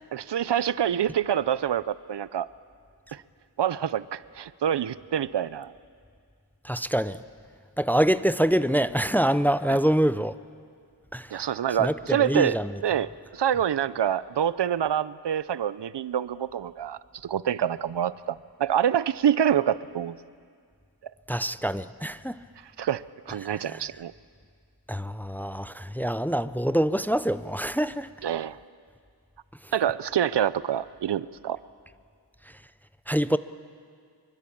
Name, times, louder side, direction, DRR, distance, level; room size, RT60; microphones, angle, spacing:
voice 1, 0.1-2.5 3.1-3.2 3.6-5.7 9.7-9.8 11.3-12.6 12.8-20.1 22.8-24.1 28.2-28.6 29.7-31.6, right 9 dB, 80° right, 17 dB, 0.7 m, -26 dB
voice 2, 6.6-7.2 7.8-10.3 11.1-11.5 11.8-12.7 21.3-22.4 23.4-23.8 24.9-28.1 29.6-29.7 32.5-32.6 33.1-33.4, equal, 5° left, 13 dB, 0.5 m, -25 dB
24.5 x 23.5 x 8.6 m, 2.2 s
wide cardioid pair, 90°, 41 cm